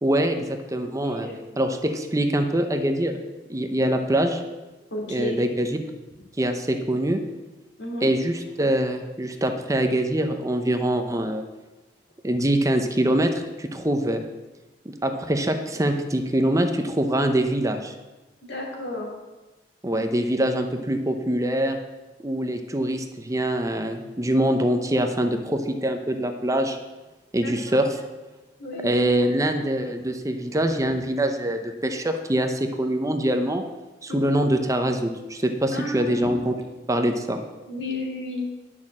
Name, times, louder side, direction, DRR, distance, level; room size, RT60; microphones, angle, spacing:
voice 1, 0.0-1.3 1.6-3.2 3.5-4.4 5.1-5.7 6.4-7.2 8.0-11.4 12.2-14.2 14.8-17.9 19.8-21.8 22.2-26.8 27.3-28.0 28.7-33.6 34.0-36.5 36.9-37.4, right 1 dB, 20° right, 6 dB, 0.8 m, -24 dB
voice 2, 1.0-1.4 4.9-5.4 7.8-8.1 18.4-19.1 27.4-27.9 28.6-29.0 34.1-34.2 35.7-36.4 37.7-38.5, left 1 dB, 70° left, -1 dB, 2.9 m, -32 dB
10.5 x 6.5 x 7.3 m, 1.1 s
head